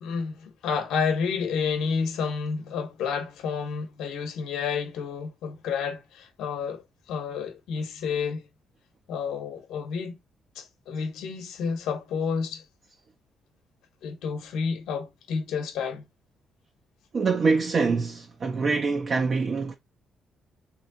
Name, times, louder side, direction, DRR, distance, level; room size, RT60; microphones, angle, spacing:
voice 1, 0.0-8.4 9.1-10.2 10.5-12.6 14.0-16.0, left 6 dB, 80° left, 1.0 m, -30 dB
voice 2, 17.1-19.7, right 4 dB, 45° right, 0.7 m, -25 dB
3.4 x 3.1 x 3.9 m
cardioid pair, 90°, 0 cm